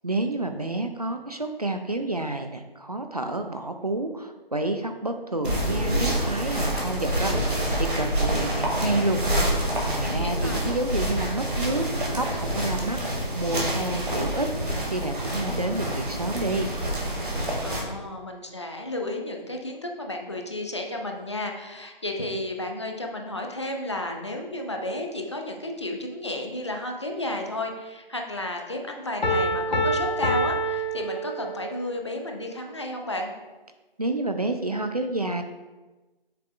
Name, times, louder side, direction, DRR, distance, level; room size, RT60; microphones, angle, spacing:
voice 1, 0.0-16.7 34.0-35.4, right 2 dB, 40° right, 6 dB, 0.4 m, -29 dB
sound 1, 5.4-17.8, right 1 dB, 60° right, 2.1 m, -27 dB
voice 2, 10.0-10.7 17.6-33.3, left 1 dB, 30° left, 2 dB, 0.6 m, -33 dB
Piano, 29.2-31.8, equal, 45° left, 1.0 m, -26 dB
8.2 x 6.8 x 2.4 m, 1.2 s
figure-of-eight pair, 155°, 30 cm